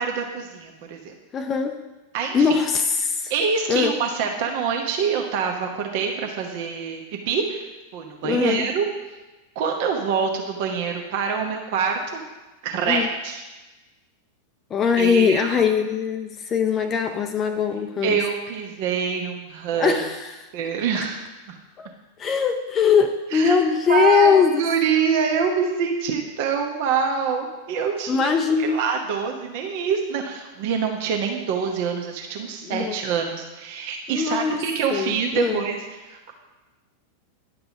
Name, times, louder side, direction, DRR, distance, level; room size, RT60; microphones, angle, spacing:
voice 1, 0.0-1.1 2.1-2.5 3.3-7.6 7.9-8.8 9.5-12.2 12.6-13.4 15.0-15.6 18.0-20.0 20.5-21.2 21.5-21.6 23.3-23.6 23.9-28.3 28.6-35.8 36.0-36.3, right 6 dB, 50° right, 3 dB, 0.9 m, -25 dB
voice 2, 1.3-1.8 2.3-3.3 3.7-3.9 8.2-8.7 12.9-13.1 14.7-18.2 19.7-20.5 21.8-21.9 22.2-24.6 28.1-28.8 32.6-33.0 34.1-34.6 34.9-35.6, left 6 dB, 25° left, 6 dB, 0.5 m, -21 dB
10.0 x 5.3 x 5.9 m, 1.1 s
figure-of-eight pair, 90°, 0 cm